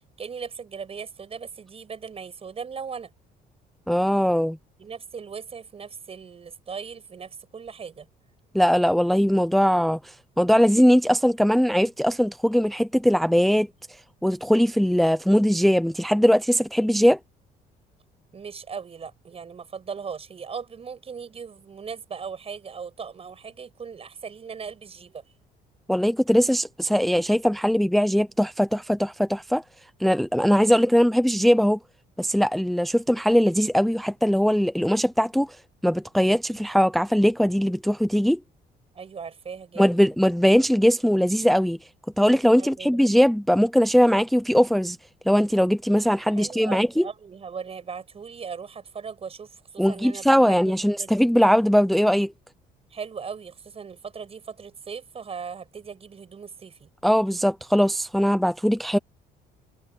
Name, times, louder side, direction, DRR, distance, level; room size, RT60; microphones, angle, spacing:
voice 1, 0.0-3.1 4.8-8.1 18.3-25.2 38.9-40.1 42.6-43.0 46.3-51.2 52.9-56.9, right 6 dB, 35° right, 7.4 m, -38 dB
voice 2, 3.9-4.6 8.5-13.7 14.2-17.2 25.9-29.6 30.0-31.8 32.2-35.6 35.8-38.4 39.8-41.8 42.2-45.0 45.3-47.1 49.8-52.3 57.0-59.0, equal, ahead, 0.6 m, -20 dB
cardioid pair, 110°, 17 cm